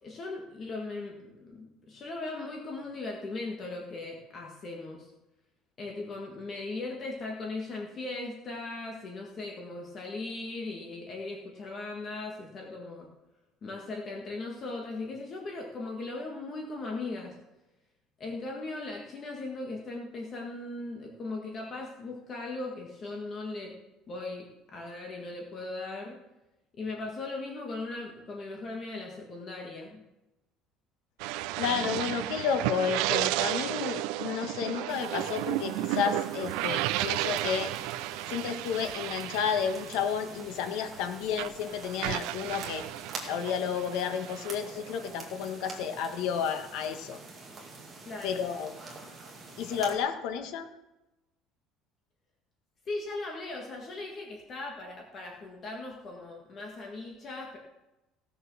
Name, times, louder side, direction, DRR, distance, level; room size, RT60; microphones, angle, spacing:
voice 1, 0.0-5.1 5.8-13.1 13.6-17.4 18.2-23.8 24.1-26.2 26.7-30.0 48.0-48.4 52.8-57.6, left 2 dB, 30° left, -1 dB, 1.7 m, -38 dB
sound 1, 31.2-41.0 41.3-45.2, right 16 dB, 70° right, 0.4 m, -33 dB
voice 2, 31.6-37.7 38.3-42.9 43.3-47.2 48.2-48.7 49.6-50.7, left 7 dB, 65° left, 7 dB, 1.5 m, -31 dB
sound 2, 34.9-50.0, right 3 dB, 20° right, 2.3 m, -46 dB
17.0 x 6.9 x 6.3 m, 0.98 s
cardioid pair, 175°, 0 cm